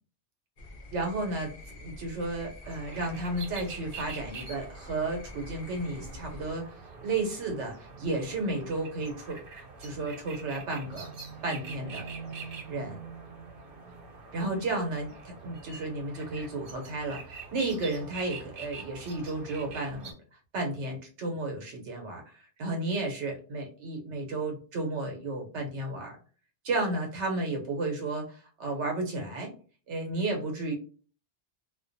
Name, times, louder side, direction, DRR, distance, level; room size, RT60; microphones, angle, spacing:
sound 1, 0.6-6.5, left 1 dB, 55° left, 0.5 m, -47 dB
voice 1, 0.9-1.5 1.8-6.7 7.0-11.1 11.4-12.1 12.7-13.0 14.3-20.1 20.5-26.2 26.6-29.5 29.9-30.7, right 2 dB, 85° right, 2 dB, 1.1 m, -33 dB
sound 2, 2.6-20.1, right 4 dB, 55° right, 0.8 m, -45 dB
2.4 x 2.2 x 2.5 m, 0.38 s
omnidirectional pair, 1.2 m